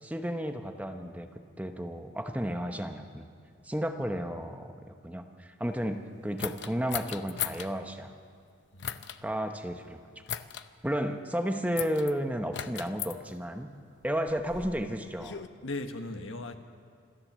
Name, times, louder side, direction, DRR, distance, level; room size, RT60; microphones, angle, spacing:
voice 1, 0.0-3.3 3.6-4.7 5.0-8.1 9.2-10.1 10.8-13.7 14.0-15.4, equal, 5° right, 0.9 m, -33 dB
sound 1, 6.4-7.7 8.8-9.2 10.3-10.7 11.8-12.1 12.5-13.1 14.0-15.5, left 9 dB, 60° left, 0.7 m, -37 dB
voice 2, 8.7-9.3 15.6-16.5, left 2 dB, 80° left, 1.4 m, -38 dB
26.5 x 13.5 x 7.4 m
head